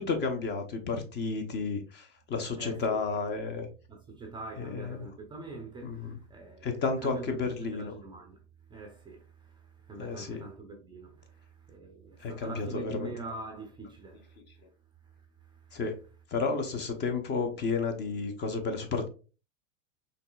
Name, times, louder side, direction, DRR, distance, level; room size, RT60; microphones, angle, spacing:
voice 1, 0.0-3.7 4.6-5.1 5.8-6.2 6.6-7.9 10.0-10.4 12.2-13.1 15.7-15.9 16.3-19.1, left 4 dB, 25° left, 0.7 m, -32 dB
voice 2, 2.6-3.0 3.9-8.4 8.7-14.4 15.4-15.8, right 3 dB, 10° right, 0.5 m, -44 dB
5.3 x 3.2 x 2.3 m
hypercardioid pair, 120°, 40 cm